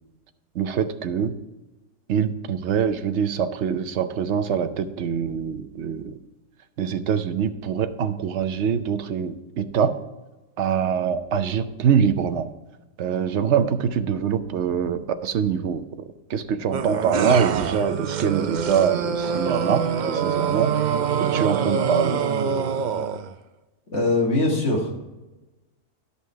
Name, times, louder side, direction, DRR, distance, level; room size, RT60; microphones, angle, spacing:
voice 1, 0.5-1.3 2.1-6.2 6.8-10.0 10.6-12.5 13.0-20.9 21.2-22.2, right 7 dB, 60° right, 10 dB, 0.9 m, -24 dB
sound 1, 16.7-23.3, right 6 dB, 90° right, 0.4 m, -25 dB
voice 2, 23.9-24.9, left 2 dB, 55° left, -1 dB, 2.2 m, -21 dB
11.0 x 5.6 x 4.5 m, 1.1 s
omnidirectional pair, 1.4 m